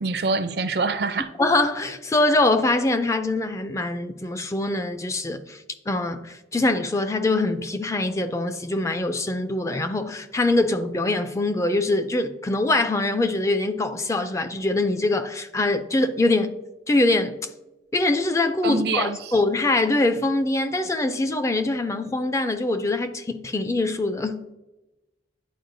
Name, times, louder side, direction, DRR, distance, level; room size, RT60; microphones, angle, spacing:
voice 1, 0.0-1.3 18.6-19.4, right 3 dB, 60° right, 0.5 m, -25 dB
voice 2, 1.4-16.5 16.9-17.3 17.9-24.4, left 2 dB, 15° left, 0.3 m, -23 dB
10.0 x 4.6 x 2.6 m
head